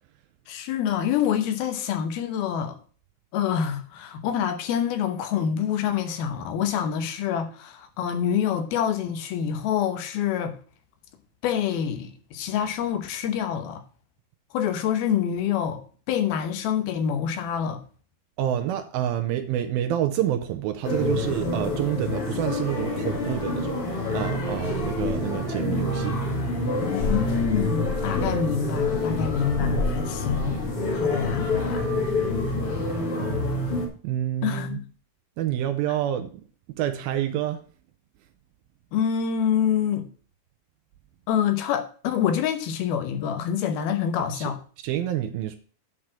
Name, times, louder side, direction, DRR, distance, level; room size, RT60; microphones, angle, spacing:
voice 1, 0.5-2.8 3.3-10.5 11.4-13.8 14.5-15.8 16.1-17.8 26.8-30.6 30.9-31.9 34.4-34.9 38.9-40.1 41.3-44.6, left 8 dB, 80° left, 2.9 m, -26 dB
voice 2, 18.4-23.8 24.1-26.2 33.0-33.5 34.0-34.8 35.4-36.3 36.7-37.6 44.3-44.4 44.8-45.6, right 11 dB, 80° right, 2.5 m, -28 dB
sound 1, 20.8-33.9, left 2 dB, 45° left, 2.4 m, -27 dB
8.3 x 4.7 x 7.4 m
omnidirectional pair, 4.4 m